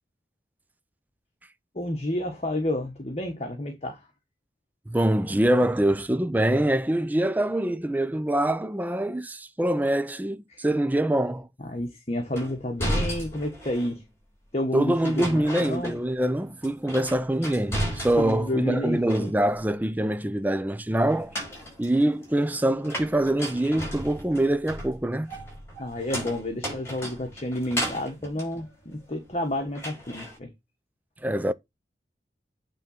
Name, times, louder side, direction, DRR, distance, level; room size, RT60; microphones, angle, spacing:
voice 1, 1.7-4.0 10.5-10.6 11.6-14.0 14.5-16.0 18.2-19.3 25.8-30.5, left 1 dB, 35° left, 1.4 m, -30 dB
voice 2, 4.9-11.5 14.7-21.4 21.8-25.3 31.2-31.5, right 1 dB, 10° right, 0.4 m, -24 dB
sound 1, 12.4-14.0 15.0-16.3 16.6-18.5 18.8-19.7 21.1-29.4 29.8-30.4, equal, 15° left, 5.3 m, -34 dB
9.1 x 3.7 x 5.7 m
head